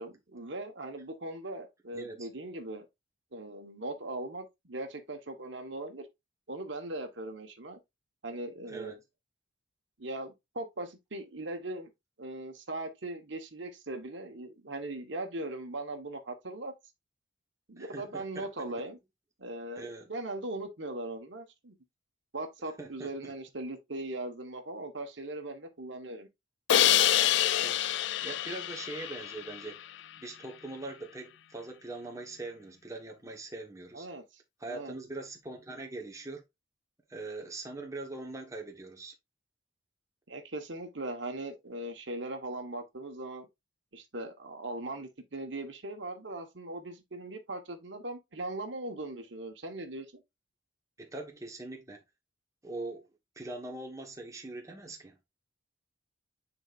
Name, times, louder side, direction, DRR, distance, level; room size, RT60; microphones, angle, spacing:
voice 1, 0.0-2.9 3.3-6.1 6.5-7.8 8.2-9.0 10.0-11.9 12.2-16.7 17.7-19.0 19.4-21.7 22.3-26.3 33.9-34.2 34.7-34.9 40.3-43.5 43.9-50.2, right 2 dB, 70° right, 1.3 m, -39 dB
voice 2, 1.9-2.3 8.7-8.9 17.8-18.7 19.8-20.1 22.8-23.3 27.6-29.8 30.2-34.1 34.6-36.4 37.1-39.1 51.0-52.0 52.6-53.1 53.3-55.2, right 2 dB, 15° right, 1.2 m, -42 dB
Crash cymbal, 26.7-29.8, left 11 dB, 65° left, 0.4 m, -26 dB
9.9 x 4.1 x 2.5 m
head